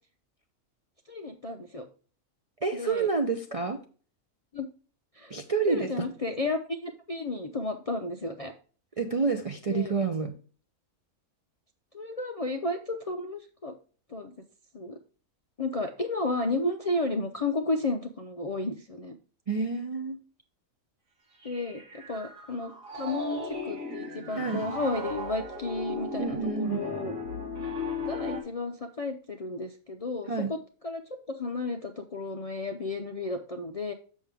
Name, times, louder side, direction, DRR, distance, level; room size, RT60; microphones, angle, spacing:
voice 1, 1.1-1.8 2.7-3.1 4.5-4.7 5.1-5.3 5.7-8.5 9.7-9.9 11.9-13.7 14.1-14.3 14.7-15.0 15.6-19.2 21.4-21.8 22.1-27.1 28.0-30.6 30.8-31.0 31.3-33.9, left 2 dB, 45° left, 4 dB, 0.4 m, -32 dB
voice 2, 2.6-3.8 5.3-6.1 9.0-10.3 19.5-20.2 24.4-24.7 26.2-26.8 30.3-30.5, right 4 dB, 45° right, 4 dB, 0.4 m, -28 dB
Piano, 21.4-28.4, left 2 dB, 70° right, 2.1 m, -36 dB
7.4 x 6.2 x 3.4 m, 0.40 s
omnidirectional pair, 1.4 m